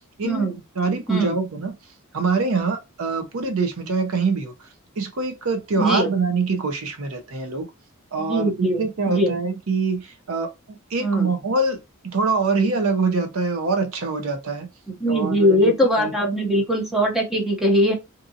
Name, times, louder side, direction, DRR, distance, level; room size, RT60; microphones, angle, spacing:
voice 1, 0.2-0.6 1.1-1.4 5.8-6.1 8.2-9.4 11.0-11.3 15.0-17.9, equal, ahead, 0.7 m, -21 dB
voice 2, 0.8-1.7 2.1-4.5 5.0-7.7 8.1-14.7 15.1-16.5, right 4 dB, 70° right, 0.7 m, -24 dB
2.7 x 2.5 x 2.6 m
head